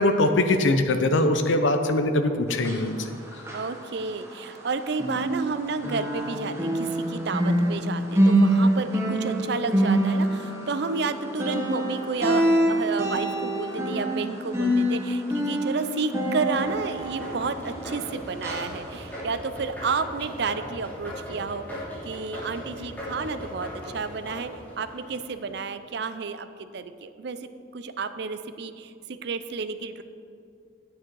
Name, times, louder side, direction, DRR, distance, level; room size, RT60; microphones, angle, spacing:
voice 1, 0.0-3.1, left 2 dB, 85° left, 7 dB, 0.7 m, -22 dB
sound 1, 2.5-4.7 4.9-18.1 18.4-18.6 19.1-19.2, right 1 dB, 15° right, 1.3 m, -25 dB
voice 2, 3.5-24.5 24.8-30.0, right 4 dB, 60° right, 11 dB, 0.5 m, -31 dB
sound 2, 16.6-25.7, equal, 10° left, 2.8 m, -38 dB
9.2 x 8.7 x 4.7 m, 2.4 s
head